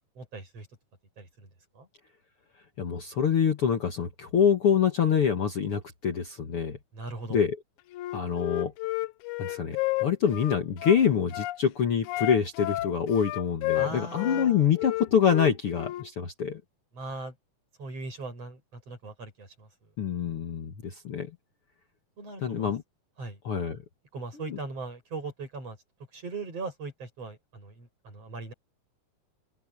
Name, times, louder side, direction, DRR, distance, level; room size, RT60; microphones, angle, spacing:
voice 1, 0.1-0.7 1.2-1.5 1.7-1.9 6.9-7.4 13.7-14.7 16.9-17.3 17.8-19.7 22.2-22.7 23.2-23.4 24.1-25.8 26.1-28.5, right 3 dB, 45° right, 8.5 m, -39 dB
voice 2, 2.8-6.8 7.3-7.6 8.1-8.7 9.4-16.6 20.0-21.3 22.4-22.8 23.4-23.8 24.5-24.6, left 7 dB, 50° left, 2.0 m, -26 dB
Wind instrument woodwind instrument, 7.9-11.6 12.0-14.5 14.8-16.1, left 18 dB, 75° left, 1.9 m, -31 dB
open air
omnidirectional pair, 3.8 m